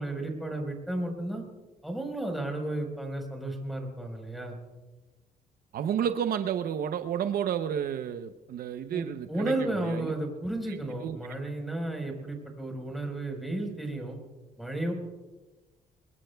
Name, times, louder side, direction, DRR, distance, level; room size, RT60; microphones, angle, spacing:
voice 1, 0.0-1.4 1.8-4.6 8.9-14.2 14.6-14.9, right 1 dB, ahead, 1 dB, 4.3 m, -33 dB
voice 2, 5.7-10.1 11.0-11.2, right 9 dB, 65° right, 9 dB, 0.7 m, -31 dB
25.5 x 21.0 x 2.3 m, 1.2 s
cardioid pair, 110°, 17 cm